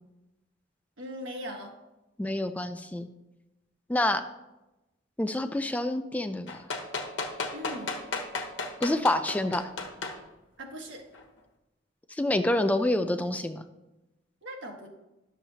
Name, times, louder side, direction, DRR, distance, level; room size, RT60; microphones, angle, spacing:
voice 1, 1.0-1.7 7.5-8.0 10.6-11.0 14.4-14.9, equal, 80° right, 0 dB, 1.7 m, -39 dB
voice 2, 2.2-3.1 3.9-4.2 5.2-6.5 8.8-9.6 12.2-13.6, left 1 dB, 10° left, 9 dB, 0.3 m, -27 dB
sound 1, 6.5-10.2 11.1-11.2, left 3 dB, 80° left, 1.2 m, -33 dB
11.5 x 7.1 x 2.8 m, 0.99 s
head